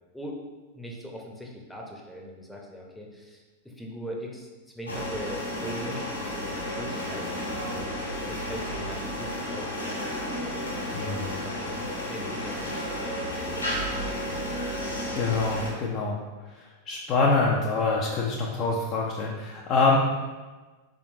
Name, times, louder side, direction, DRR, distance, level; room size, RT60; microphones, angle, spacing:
voice 1, 0.7-4.5 4.7-7.9 8.2-11.8 12.1-13.1, equal, 5° left, -2 dB, 0.7 m, -40 dB
sound 1, 4.9-15.7, equal, 85° left, 1.4 m, -32 dB
voice 2, 10.9-11.4 15.1-16.2 16.9-20.0, left 3 dB, 35° left, -3 dB, 0.4 m, -25 dB
4.3 x 3.6 x 2.6 m, 1.3 s
figure-of-eight pair, 90°, 0 cm